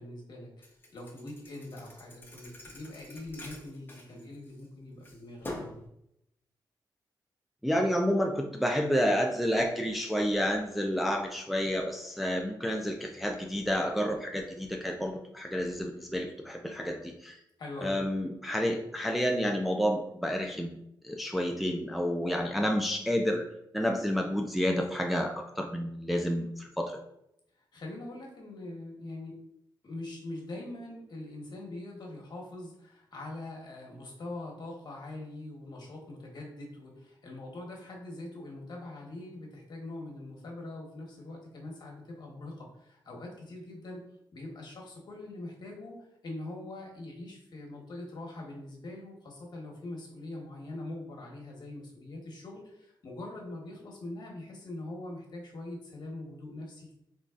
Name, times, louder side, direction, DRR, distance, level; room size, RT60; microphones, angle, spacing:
voice 1, 0.0-5.8 17.6-17.9 27.5-29.3 29.8-44.0 44.3-56.9, left 2 dB, 60° left, -1 dB, 1.1 m, -43 dB
Thump thud, 0.6-4.7 5.0-5.9, left 1 dB, 25° left, 0.8 m, -45 dB
voice 2, 7.6-17.4 17.8-20.8 21.0-23.5 23.7-27.0, equal, ahead, 2 dB, 0.4 m, -30 dB
3.8 x 3.1 x 2.3 m, 0.79 s
cardioid pair, 90°, 8 cm